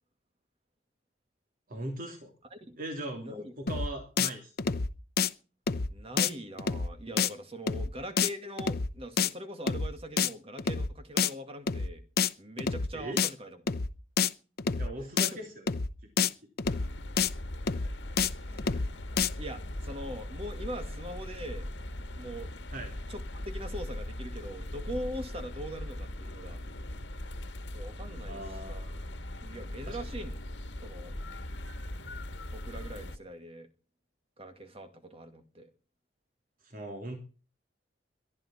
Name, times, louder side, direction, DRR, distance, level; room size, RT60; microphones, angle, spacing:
voice 1, 1.7-2.3 2.8-4.5 12.9-13.2 14.8-15.7 16.2-16.3 22.7-23.0 28.3-29.0 29.9-30.0 36.6-37.2, right 1 dB, 50° right, 3.1 m, -39 dB
voice 2, 3.2-3.5 5.9-12.0 12.4-13.6 15.3-15.4 18.4-19.0 19.4-21.7 22.2-22.5 23.1-26.6 27.7-28.8 29.4-30.4 30.8-31.1 32.5-33.7 34.4-35.7, equal, 35° right, 2.1 m, -42 dB
sound 1, 3.7-3.9 4.2-4.3 4.6-4.9 5.2-5.3 5.7-5.9 6.2-6.3 6.6-6.9 7.2-7.3 7.7-7.9 8.2-8.3 8.6-8.9 9.2-9.3 9.7-9.9 10.2-10.3 10.6-10.9 11.2-11.3 11.7-11.9 12.2-12.3 12.6-12.9 13.2-13.3 13.7-13.9 14.2-14.3 14.6-14.9 15.2-15.3 15.7-15.9 16.2-16.3 16.6-16.9 17.2-17.3 17.7-17.9 18.2-18.3 18.6-18.9 19.2-19.3, left 5 dB, 60° left, 0.8 m, -27 dB
sound 2, 16.6-33.2, left 1 dB, 80° left, 1.6 m, -40 dB
22.5 x 11.0 x 4.4 m
head